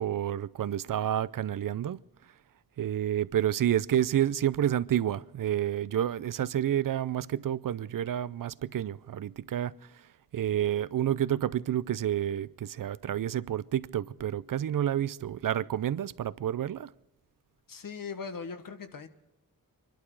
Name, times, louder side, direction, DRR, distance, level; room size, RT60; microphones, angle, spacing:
voice 1, 0.0-2.0 2.8-10.1 10.3-16.9, right 11 dB, 65° right, 0.5 m, -29 dB
voice 2, 17.7-19.1, left 5 dB, 70° left, 1.4 m, -39 dB
25.0 x 12.0 x 4.7 m
wide cardioid pair, 130°, 35 cm